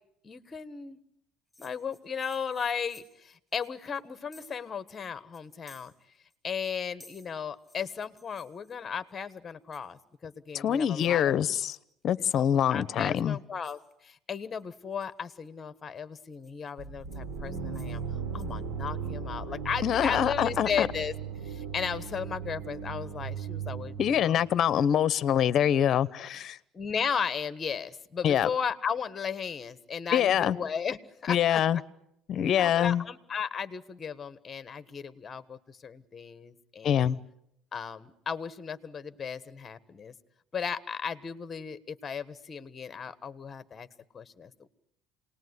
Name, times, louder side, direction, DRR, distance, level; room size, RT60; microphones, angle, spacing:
voice 1, 0.2-1.0 1.6-5.9 6.4-11.4 12.3-18.0 18.3-21.1 21.4-24.4 26.7-31.8 32.4-37.2 37.7-40.1 40.5-43.9 44.1-44.7, left 6 dB, 25° left, 13 dB, 1.4 m, -35 dB
sound 1, 1.5-4.7 5.0-5.1 5.3-6.4 6.6-9.1 9.7-10.1 10.6-11.2 11.6-11.9 12.3-12.5 13.2-13.3 13.6-13.9 14.6-15.5 16.0-18.0 18.3-18.4, left 2 dB, ahead, 7.2 m, -58 dB
voice 2, 10.5-11.8 12.0-13.4 19.8-20.9 24.0-26.6 28.2-28.5 30.1-30.6 31.3-31.8 32.3-33.0 36.8-37.2, left 9 dB, 40° left, 17 dB, 0.9 m, -25 dB
sound 2, 16.8-24.6, right 6 dB, 70° right, 3.6 m, -37 dB
28.0 x 19.5 x 9.6 m, 0.79 s
cardioid pair, 145°, 0 cm